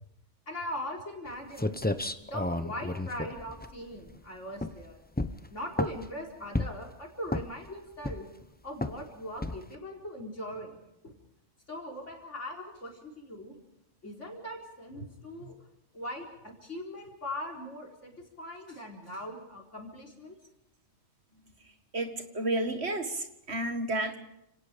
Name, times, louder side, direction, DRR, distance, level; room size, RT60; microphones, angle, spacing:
voice 1, 0.5-1.8 2.2-5.0 5.5-8.3 8.6-11.2 11.7-13.6 14.0-15.6 15.9-20.4, equal, 60° left, 0 dB, 4.6 m, -40 dB
sound 1, 1.3-1.4 1.6-4.2 4.6-4.8 5.2-6.1 6.5-6.9 7.3-7.7 8.0-8.4 8.8-9.0 9.4-9.7, left 2 dB, 10° left, 0.7 m, -32 dB
voice 2, 21.9-24.2, right 1 dB, 55° right, 6 dB, 2.0 m, -31 dB
30.0 x 18.0 x 5.1 m, 0.82 s
omnidirectional pair, 1.4 m